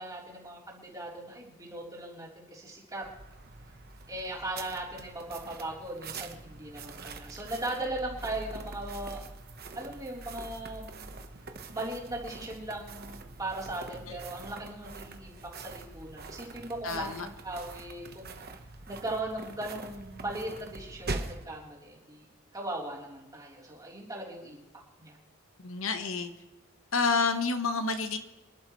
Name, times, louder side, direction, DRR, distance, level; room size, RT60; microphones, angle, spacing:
voice 1, 0.0-3.0 4.1-9.2 9.7-11.1 11.7-18.4 18.9-22.3 22.5-24.6 25.0-25.2, right 1 dB, 15° right, -4 dB, 3.7 m, -38 dB
sound 1, 3.0-21.4, right 3 dB, 45° right, 1.2 m, -44 dB
voice 2, 16.8-17.3 25.6-26.3 26.9-28.2, left 4 dB, 70° left, 8 dB, 1.1 m, -29 dB
27.5 x 12.0 x 3.2 m, 1.0 s
head